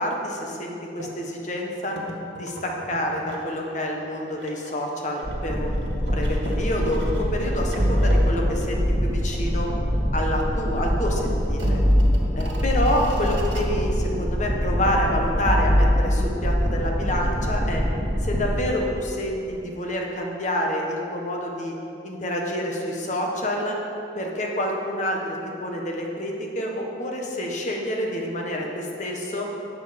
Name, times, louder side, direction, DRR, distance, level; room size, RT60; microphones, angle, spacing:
voice 1, 0.0-1.9 2.4-9.7 10.1-11.8 12.3-17.8 18.2-21.7 22.0-23.8 24.1-29.5, left 1 dB, 40° left, 0 dB, 1.3 m, -28 dB
sound 1, 1.0-1.2 2.0-3.5 3.8-9.1 9.4-9.5 10.0-10.5 10.8-10.9 11.4-13.7, right 1 dB, 75° right, 1.4 m, -40 dB
sound 2, 5.2-18.5, equal, 25° right, 1.7 m, -23 dB
11.0 x 7.5 x 5.2 m, 2.7 s
head